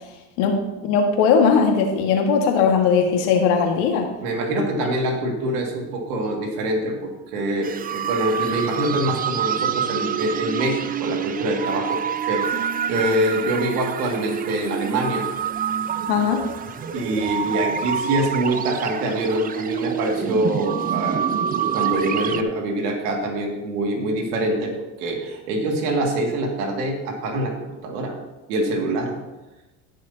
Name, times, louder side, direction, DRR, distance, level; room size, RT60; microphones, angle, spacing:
voice 1, 0.8-4.1 16.1-16.4, left 6 dB, 80° left, 2 dB, 1.9 m, -18 dB
voice 2, 4.2-12.0 12.3-15.3 16.9-21.2 21.7-24.7 25.0-27.5 27.8-28.1 28.5-29.1, right 1 dB, 85° right, 1 dB, 2.3 m, -25 dB
sound 1, 7.6-22.4, right 8 dB, 20° right, 0.4 m, -27 dB
17.5 x 6.5 x 2.8 m, 1.1 s
supercardioid pair, 100°, 45 cm